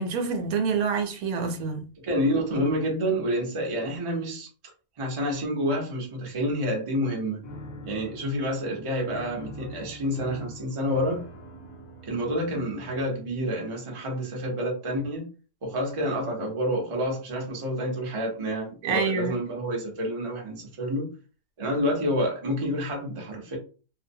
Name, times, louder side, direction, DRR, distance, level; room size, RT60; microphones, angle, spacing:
voice 1, 0.0-1.9 18.8-19.4, right 5 dB, 80° right, 1.0 m, -27 dB
voice 2, 2.0-4.5 5.0-7.4 7.8-11.2 12.0-15.2 15.6-21.1 21.6-23.6, equal, 30° right, 0.6 m, -28 dB
Piano, 7.4-13.3, left 1 dB, 65° left, 0.9 m, -43 dB
2.6 x 2.0 x 2.6 m
omnidirectional pair, 1.5 m